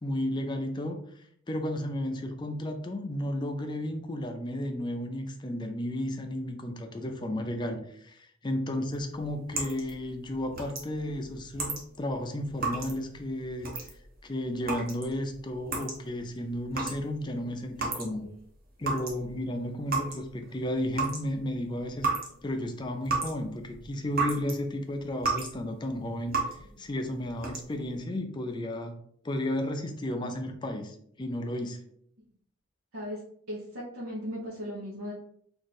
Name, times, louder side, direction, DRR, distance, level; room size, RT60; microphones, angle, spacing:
voice 1, 0.0-1.0 1.5-13.7 14.2-18.3 18.8-22.1 22.4-26.4 26.8-28.9 29.2-31.8, left 1 dB, 20° left, 5 dB, 0.4 m, -33 dB
sound 1, 8.9-18.4 18.7-24.6 24.9-25.6 25.9-26.7 27.2-27.9, right 4 dB, 45° right, 0.9 m, -34 dB
voice 2, 33.5-35.1, equal, 90° right, -6 dB, 1.0 m, -37 dB
3.1 x 2.5 x 4.1 m, 0.67 s
head